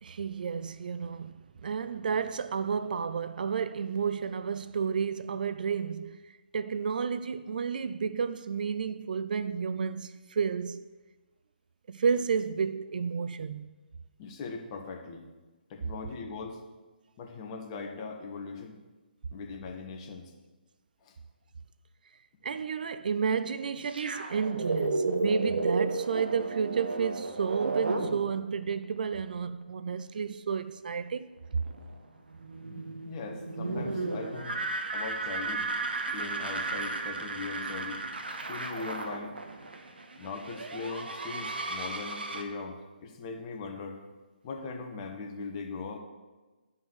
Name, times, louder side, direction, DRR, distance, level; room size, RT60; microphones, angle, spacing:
voice 1, 0.0-1.3 1.6-6.2 6.5-10.9 11.9-13.8 22.4-31.3, right 6 dB, 55° right, 0.4 m, -31 dB
voice 2, 14.2-15.2 15.7-16.6 17.2-18.8 19.3-20.3 21.0-21.1 32.7-34.6 34.9-35.7 36.1-38.0 38.5-39.4 40.2-44.0 44.4-46.0, left 4 dB, 30° left, 1.4 m, -40 dB
sound 1, 23.9-28.8 29.1-29.2 31.6-42.4, right 3 dB, 70° right, 1.2 m, -34 dB
11.5 x 5.5 x 6.3 m
figure-of-eight pair, 140°, 6 cm